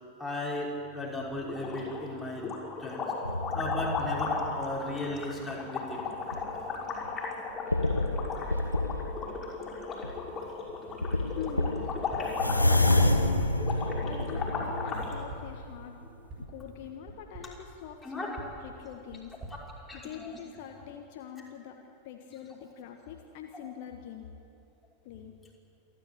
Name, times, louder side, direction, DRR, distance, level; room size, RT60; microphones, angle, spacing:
voice 1, 0.2-2.5 2.8-3.0 3.5-6.0 6.7-6.8 18.0-18.4 19.9-20.4 22.5-22.6, left 1 dB, 5° left, -5 dB, 5.8 m, -36 dB
sound 1, 1.4-2.1 2.4-15.1, left 4 dB, 20° left, 5.8 m, -35 dB
sound 2, 3.2-5.4 5.9-6.6 7.1-7.2 7.7-9.3 10.0-10.2 10.7-10.8 11.0-16.1 16.4-16.5, left 1 dB, 85° left, 1.2 m, -29 dB
voice 2, 11.3-12.0 12.6-13.6 14.0-16.0 16.5-19.3 19.9-24.3 25.0-25.3, left 8 dB, 50° left, 3 dB, 1.5 m, -43 dB
sound 3, 12.1-12.5 12.9-13.6 14.2-14.5 15.0-15.7 16.3-16.6 17.1-17.6 18.4-20.4, right 2 dB, 30° right, 7.0 m, -46 dB
27.5 x 12.0 x 8.8 m, 2.8 s
figure-of-eight pair, 90°, 0 cm